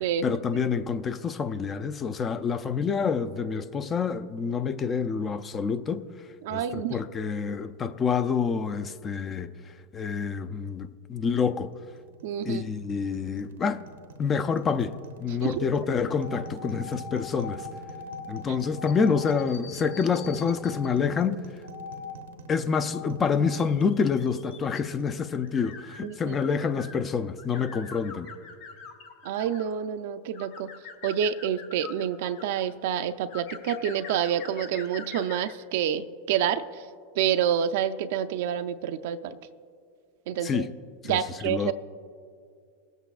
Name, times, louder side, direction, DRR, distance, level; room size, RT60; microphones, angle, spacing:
voice 1, 0.2-6.1 6.5-9.5 9.9-11.7 12.5-13.8 14.2-17.7 18.3-21.4 22.5-28.3 40.4-40.7 41.0-41.7, left 6 dB, 25° left, 0.4 m, -27 dB
voice 2, 6.4-7.0 12.2-12.6 15.3-15.7 26.0-26.4 29.2-30.7 31.0-36.6 37.2-39.4 40.3-40.7 41.0-41.7, right 9 dB, 70° right, 0.4 m, -28 dB
sound 1, 11.5-26.7, right 3 dB, 90° right, 0.8 m, -47 dB
sound 2, 16.1-21.0 21.6-22.2 22.7-23.1 23.4-27.0 27.4-29.8 30.3-32.7 33.3-35.5, left 5 dB, 60° left, 1.4 m, -43 dB
21.5 x 8.0 x 2.4 m
hypercardioid pair, 115°, 0 cm